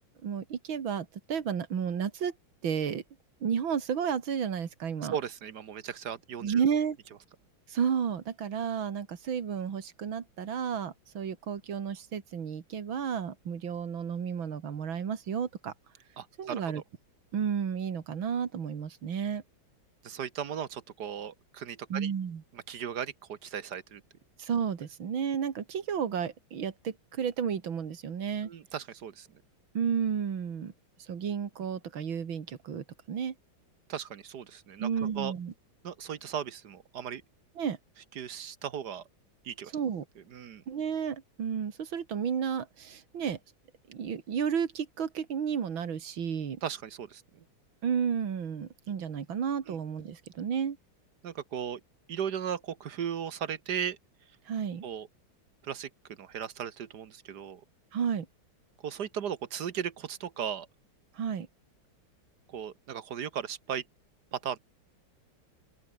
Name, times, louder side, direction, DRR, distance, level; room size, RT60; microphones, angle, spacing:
voice 1, 0.2-2.3 2.6-3.0 3.4-5.2 6.4-7.0 7.7-15.7 16.4-16.8 17.3-19.4 21.9-22.4 24.4-28.5 29.7-30.7 31.0-33.3 34.8-35.5 37.6-37.8 39.7-40.1 40.7-43.4 43.9-46.6 47.8-50.8 54.5-54.8 57.9-58.3 61.1-61.5, right 7 dB, 75° right, 2.8 m, -32 dB
voice 2, 5.1-6.6 16.2-16.8 20.0-22.1 22.5-24.0 28.4-29.3 33.9-34.9 35.2-35.3 35.8-37.2 38.2-39.0 39.4-39.7 40.3-40.6 46.6-47.4 49.7-49.8 51.2-51.8 52.1-54.0 54.8-55.1 55.6-55.9 56.2-57.6 58.8-60.7 62.5-63.8 64.3-64.6, right 8 dB, 60° right, 1.6 m, -36 dB
open air
omnidirectional pair, 2.2 m